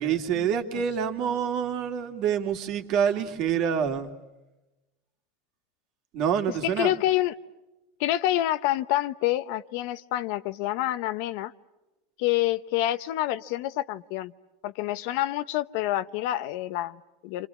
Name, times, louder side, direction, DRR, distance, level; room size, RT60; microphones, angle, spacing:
voice 1, 0.0-4.1 6.1-6.9, right 8 dB, 50° right, 2.6 m, -26 dB
voice 2, 6.6-7.3 8.0-11.5 12.2-14.3 14.6-17.5, left 14 dB, 65° left, 0.9 m, -27 dB
28.5 x 26.5 x 7.3 m
supercardioid pair, 135°, 0 cm